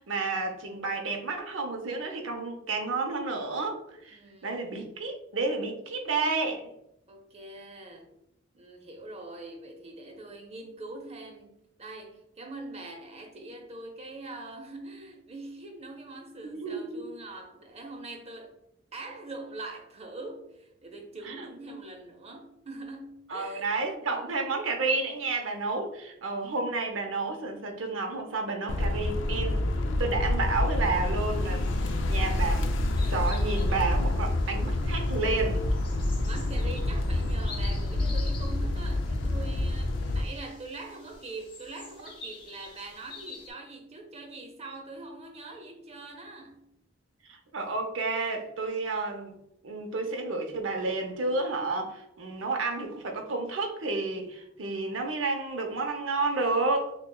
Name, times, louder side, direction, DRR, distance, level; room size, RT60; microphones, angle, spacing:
voice 1, 0.0-6.7 16.5-17.1 21.2-21.8 23.3-29.7 30.0-32.7 33.1-35.6 47.3-49.4 49.6-56.9, right 3 dB, 90° right, 0.8 m, -31 dB
voice 2, 4.1-4.6 7.1-8.1 8.5-18.5 18.9-23.7 24.0-24.5 36.2-46.8, right 2 dB, 35° right, 0.7 m, -43 dB
sound 1, 28.7-40.2, left 1 dB, 70° left, 0.4 m, -27 dB
sound 2, 31.2-43.5, left 4 dB, 25° left, 0.8 m, -49 dB
6.5 x 2.2 x 2.3 m
head